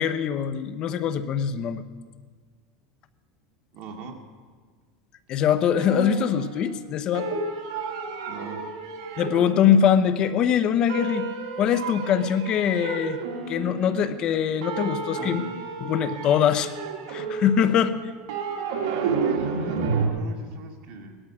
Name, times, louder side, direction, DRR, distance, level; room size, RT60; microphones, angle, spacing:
voice 1, 0.0-1.9 5.3-7.4 9.2-11.3 11.6-13.2 13.5-15.4 15.8-16.7 17.1-17.9, left 8 dB, 40° left, 11 dB, 0.9 m, -23 dB
voice 2, 3.7-4.2 8.3-8.7 15.2-15.6 19.0-21.2, right 4 dB, 45° right, 2 dB, 2.3 m, -39 dB
sound 1, 5.8-6.9 7.1-10.5 10.9-14.4 14.6-20.1, right 4 dB, 75° right, 2.2 m, -31 dB
18.0 x 12.5 x 6.1 m, 1.5 s
supercardioid pair, 140°, 2 cm